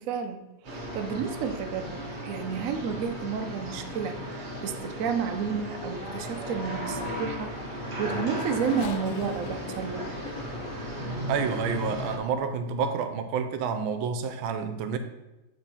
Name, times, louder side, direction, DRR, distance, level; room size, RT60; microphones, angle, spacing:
voice 1, 0.0-10.0, right 7 dB, 70° right, 6 dB, 0.7 m, -31 dB
sound 1, 0.6-12.2, equal, 35° right, 0.8 m, -36 dB
Race car auto racing / Accelerating revving vroom, 8.0-12.2 12.9-13.0 14.1-14.3, left 5 dB, 85° left, 0.7 m, -41 dB
voice 2, 11.3-15.0, right 6 dB, 90° right, 9 dB, 1.4 m, -29 dB
8.1 x 3.7 x 4.2 m, 1.0 s
omnidirectional pair, 2.1 m